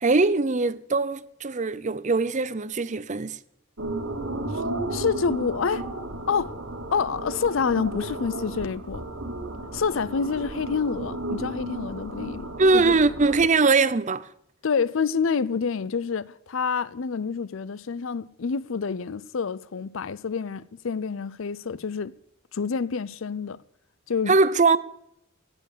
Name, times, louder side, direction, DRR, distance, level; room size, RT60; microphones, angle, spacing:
voice 1, 0.0-3.4 12.6-14.3 24.3-24.8, right 3 dB, 35° right, 0.6 m, -21 dB
sound 1, 3.8-13.4, right 1 dB, 80° right, 2.1 m, -33 dB
voice 2, 4.9-5.9 6.3-6.5 6.9-9.0 9.7-13.0 14.6-22.1 22.5-23.6 24.1-24.3, left 5 dB, 65° left, 0.5 m, -27 dB
16.0 x 9.8 x 6.7 m
head